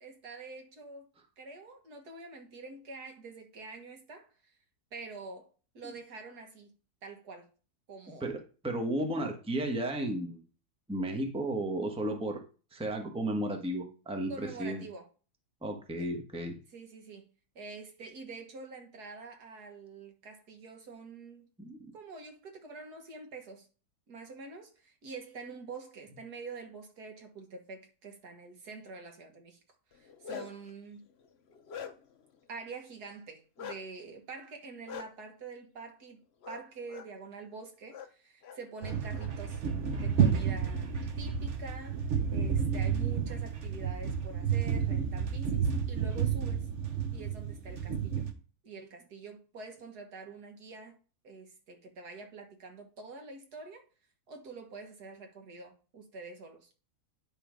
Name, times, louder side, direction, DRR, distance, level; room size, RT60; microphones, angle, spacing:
voice 1, 0.0-1.1 1.4-4.5 4.9-5.5 5.7-6.7 7.0-7.5 7.9-8.3 14.3-15.1 16.0-16.1 16.4-17.2 17.6-21.5 21.9-23.7 24.1-29.6 29.9-31.0 32.5-36.2 36.5-39.6 39.9-46.7 47.1-48.3 48.6-51.0 51.2-53.8 54.3-56.7, right 4 dB, 75° right, 2.1 m, -46 dB
voice 2, 8.6-10.4 10.9-12.4 12.7-14.8 15.6-16.6 21.6-21.8 30.3-30.4, right 1 dB, 5° right, 1.0 m, -33 dB
Bark, 29.9-30.7 31.2-32.2 33.6-33.8 34.9-35.0 36.4-36.6 36.9-37.1 37.9-38.1 38.4-39.3, left 8 dB, 50° left, 0.8 m, -43 dB
sound 1, 38.8-48.3, right 7 dB, 50° right, 1.2 m, -31 dB
10.5 x 3.7 x 5.1 m
omnidirectional pair, 1.7 m